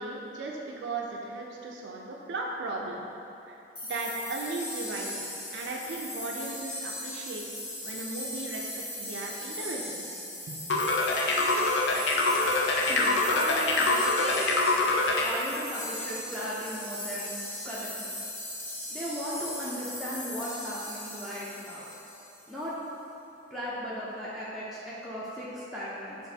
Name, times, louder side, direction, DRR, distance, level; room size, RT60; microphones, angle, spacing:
voice 1, 0.0-3.1 3.5-3.6 3.9-7.4 7.8-10.2 10.5-10.9, right 2 dB, 70° right, -1 dB, 0.4 m, -37 dB
sound 1, 3.7-22.4, left 1 dB, 30° left, 1.4 m, -38 dB
sound 2, 10.7-15.3, left 2 dB, 75° left, 0.5 m, -25 dB
voice 2, 12.9-14.5 15.2-17.4 17.6-18.3 18.9-21.9 22.5-22.8 23.5-26.2, equal, ahead, -10 dB, 0.4 m, -37 dB
6.1 x 2.6 x 2.7 m, 2.9 s
head